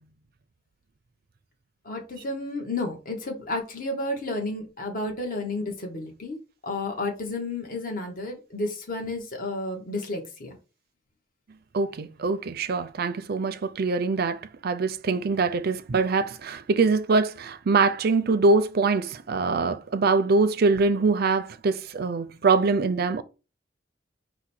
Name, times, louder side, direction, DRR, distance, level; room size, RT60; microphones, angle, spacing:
voice 1, 1.8-6.4 6.6-10.5, left 2 dB, 50° left, 1.1 m, -31 dB
voice 2, 11.7-23.2, right 3 dB, 55° right, 0.5 m, -23 dB
4.8 x 2.2 x 4.3 m
head